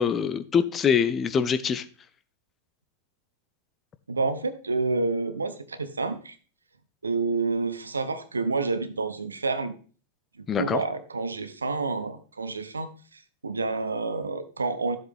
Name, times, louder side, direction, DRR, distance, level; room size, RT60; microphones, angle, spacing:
voice 1, 0.0-1.8 10.5-10.8, left 7 dB, 25° left, 12 dB, 0.7 m, -24 dB
voice 2, 4.1-6.4 7.0-9.7 10.4-15.0, right 3 dB, 75° right, 13 dB, 0.9 m, -29 dB
12.5 x 7.6 x 3.5 m, 0.40 s
figure-of-eight pair, 90°, 0 cm